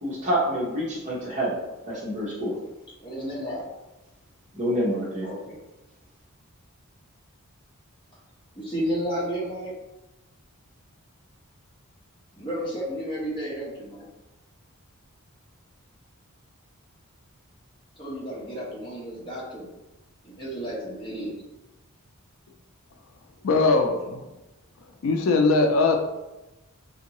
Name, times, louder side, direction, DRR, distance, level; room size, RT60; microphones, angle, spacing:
voice 1, 0.0-2.5 4.6-5.3, equal, 35° right, -5 dB, 1.0 m, -27 dB
voice 2, 3.0-3.7 5.2-5.6 8.5-9.7 12.3-14.1 18.0-19.7 20.2-21.3, equal, 20° left, -6 dB, 1.0 m, -32 dB
voice 3, 23.4-24.2 25.0-26.0, left 3 dB, 65° left, 4 dB, 0.4 m, -20 dB
3.6 x 2.6 x 2.9 m, 1.0 s
head